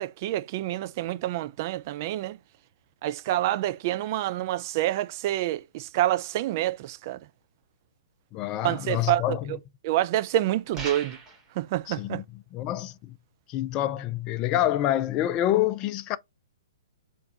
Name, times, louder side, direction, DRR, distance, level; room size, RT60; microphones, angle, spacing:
voice 1, 0.0-2.4 3.0-7.2 8.6-9.4 9.8-11.2 11.6-12.2, right 14 dB, 40° right, 0.4 m, -27 dB
voice 2, 8.3-9.6 11.9-12.2 12.5-13.2 13.5-16.2, left 13 dB, 30° left, 0.3 m, -27 dB
sound 1, 10.7-11.5, right 3 dB, 20° right, 1.8 m, -37 dB
3.4 x 3.0 x 4.0 m
figure-of-eight pair, 120°, 2 cm